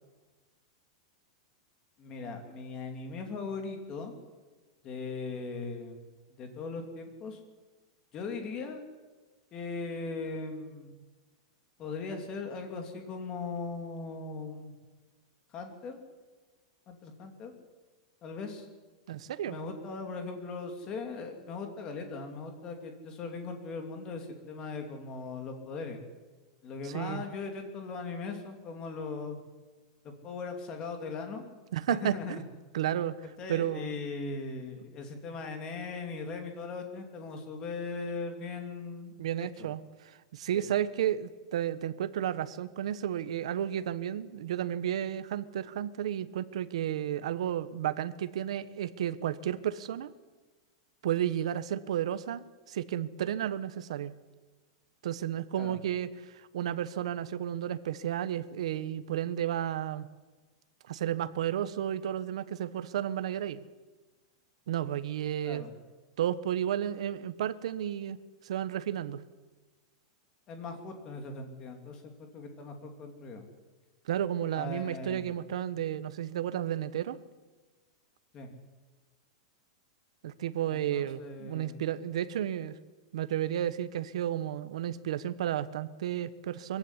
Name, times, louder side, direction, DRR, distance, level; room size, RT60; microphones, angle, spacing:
voice 1, 2.0-4.1 4.8-6.0 6.4-7.4 8.1-8.8 9.5-10.9 11.8-14.7 15.5-16.0 16.9-17.5 18.2-18.7 19.4-26.0 26.6-29.4 30.0-31.4 31.9-32.4 33.4-39.1 39.4-39.7 40.5-40.7 55.6-55.8 65.4-65.7 70.5-73.4 74.5-75.3 78.3-78.5 80.7-81.8, left 4 dB, 20° left, 5 dB, 2.9 m, -39 dB
voice 2, 19.1-19.6 26.8-27.2 31.7-32.4 32.7-34.0 39.2-50.1 51.0-54.1 55.0-60.1 60.9-63.6 64.7-65.6 66.2-68.2 68.4-69.2 74.0-77.2 80.2-82.7 83.1-86.8, right 10 dB, 70° right, 14 dB, 1.3 m, -32 dB
23.0 x 15.5 x 9.9 m, 1.3 s
supercardioid pair, 180°, 3 cm